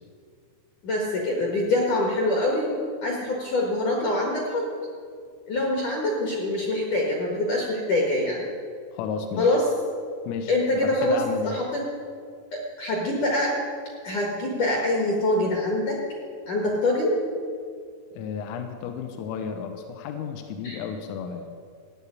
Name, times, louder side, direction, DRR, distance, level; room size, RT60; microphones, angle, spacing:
voice 1, 0.8-4.6 5.5-8.5 9.4-9.6 10.5-11.8 12.5-13.6 14.0-16.0 16.5-17.2 20.6-20.8, left 1 dB, 60° left, -2 dB, 2.2 m, -25 dB
voice 2, 8.9-9.5 10.3-10.5 10.8-11.6 18.1-21.5, left 6 dB, 85° left, 5 dB, 3.5 m, -33 dB
15.0 x 7.3 x 9.7 m, 2.2 s
omnidirectional pair, 6.0 m